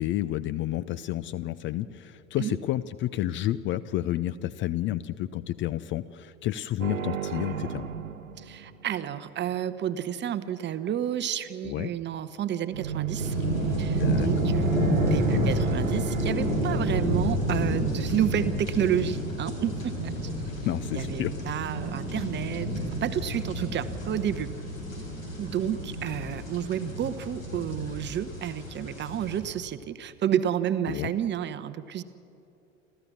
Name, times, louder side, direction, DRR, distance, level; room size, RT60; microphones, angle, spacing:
voice 1, 0.0-7.9 11.6-11.9 13.9-14.5 20.6-21.3 30.9-31.1, left 14 dB, 30° left, 16 dB, 0.5 m, -30 dB
sound 1, 6.8-9.0 12.6-17.2, right 7 dB, 80° right, 1.2 m, -33 dB
voice 2, 8.4-13.4 13.8-14.7 15.1-20.1 20.9-22.7 23.0-24.5 25.4-32.0, right 10 dB, 30° right, 12 dB, 0.9 m, -30 dB
sound 2, 13.2-29.4, equal, 85° left, 4.7 m, -30 dB
29.0 x 13.5 x 7.3 m, 2.7 s
figure-of-eight pair, 80°, 39 cm